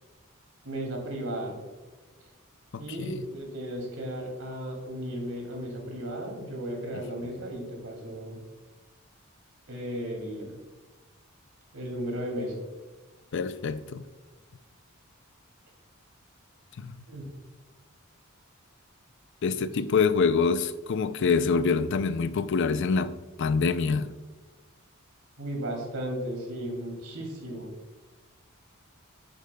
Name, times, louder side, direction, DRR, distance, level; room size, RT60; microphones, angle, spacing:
voice 1, 0.6-1.6 2.8-8.4 9.7-10.5 11.7-12.6 17.1-17.3 25.4-27.7, right 1 dB, 80° right, 2.6 m, -35 dB
voice 2, 2.7-3.2 13.3-14.0 16.8-16.9 19.4-24.1, left 5 dB, 60° left, 0.4 m, -26 dB
10.0 x 8.1 x 2.3 m
head